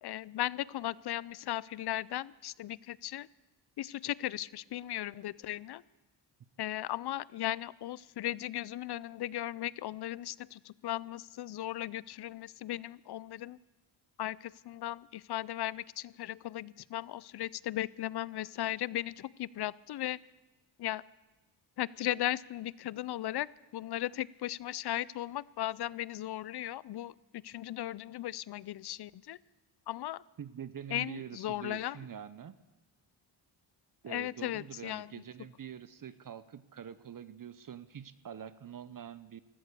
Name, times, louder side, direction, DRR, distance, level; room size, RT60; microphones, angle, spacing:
voice 1, 0.0-3.3 3.8-5.8 6.6-13.6 14.2-20.2 20.8-21.0 21.8-27.1 27.4-29.4 29.9-30.2 30.9-32.0 34.1-35.2, left 13 dB, 55° left, 23 dB, 0.5 m, -37 dB
voice 2, 30.4-32.6 34.0-39.4, right 8 dB, 45° right, 15 dB, 0.8 m, -45 dB
15.5 x 13.5 x 6.7 m, 1.1 s
cardioid pair, 75°, 47 cm